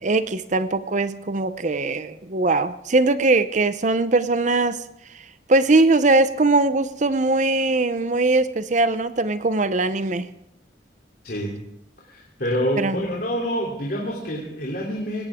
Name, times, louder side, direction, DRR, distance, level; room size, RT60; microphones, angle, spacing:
voice 1, 0.0-4.8 5.5-10.3 12.8-13.0, right 2 dB, 40° right, 12 dB, 0.7 m, -20 dB
voice 2, 11.2-11.6 12.0-15.2, equal, 55° left, -3 dB, 3.1 m, -27 dB
18.5 x 17.5 x 3.7 m, 0.80 s
head